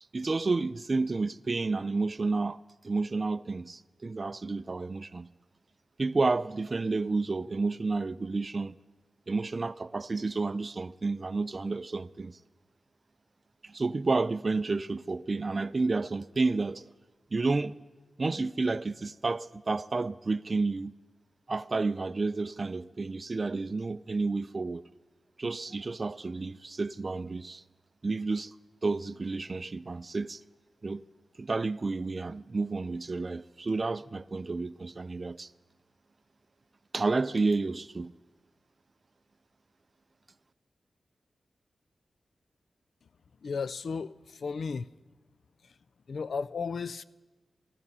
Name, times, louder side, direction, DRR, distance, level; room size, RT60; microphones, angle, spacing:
voice 1, 0.1-5.3 6.0-8.8 9.3-12.4 13.6-16.8 17.3-17.8 18.2-20.9 21.5-24.9 25.4-27.6 28.0-28.5 28.8-30.4 30.8-31.0 31.4-35.5 36.9-38.1, right 3 dB, 45° right, 0.4 m, -30 dB
voice 2, 43.4-44.9 45.6-45.8 46.1-47.0, left 5 dB, 75° left, 0.3 m, -35 dB
15.5 x 12.5 x 5.5 m
cardioid pair, 65°, 0 cm